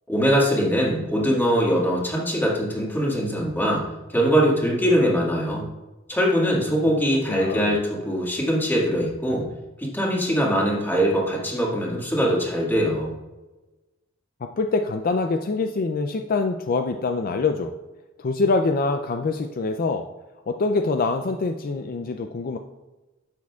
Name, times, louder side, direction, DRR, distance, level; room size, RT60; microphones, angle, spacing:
voice 1, 0.1-5.7 6.1-9.5 9.8-13.1, equal, 10° left, -3 dB, 1.8 m, -22 dB
voice 2, 7.3-7.8 14.4-17.7 18.2-20.0 20.5-22.6, left 3 dB, 45° left, 6 dB, 0.4 m, -25 dB
10.5 x 7.3 x 2.3 m, 1.1 s
head